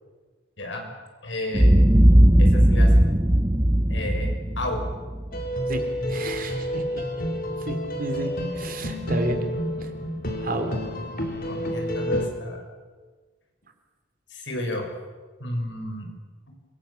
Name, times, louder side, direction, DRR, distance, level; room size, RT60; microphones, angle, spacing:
voice 1, 0.6-0.9 1.2-1.8 2.4-3.2 3.9-4.8 11.5-12.6 14.3-14.9 15.4-16.1, left 1 dB, 85° left, 2 dB, 6.4 m, -31 dB
Boom, 1.5-5.8, equal, 20° right, 1.0 m, -18 dB
sound 1, 5.3-12.3, equal, 55° left, 3.8 m, -29 dB
voice 2, 6.1-7.0 7.6-9.4 9.8-9.9 10.4-10.7, right 1 dB, 50° right, 6 dB, 3.6 m, -31 dB
26.5 x 24.5 x 7.2 m, 1.4 s
head